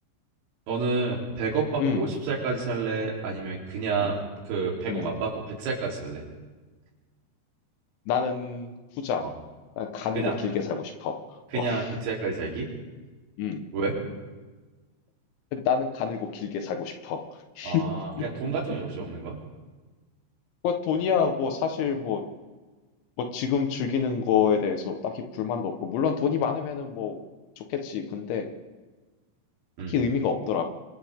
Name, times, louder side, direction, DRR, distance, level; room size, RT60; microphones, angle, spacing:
voice 1, 0.7-4.2 4.5-6.3 9.2-9.3 10.2-10.4 11.5-12.7 13.7-14.0 17.6-18.1 18.4-19.4 29.8-30.0, right 4 dB, 85° right, -4 dB, 6.4 m, -29 dB
voice 2, 1.8-2.1 4.0-4.1 4.9-5.2 8.1-9.2 9.8-11.9 13.4-13.6 15.5-17.2 17.6-17.8 18.2-18.5 20.6-22.2 23.2-27.2 27.7-28.5 29.9-30.6, left 7 dB, 75° left, 5 dB, 3.6 m, -28 dB
30.0 x 25.0 x 3.7 m, 1.3 s
omnidirectional pair, 5.7 m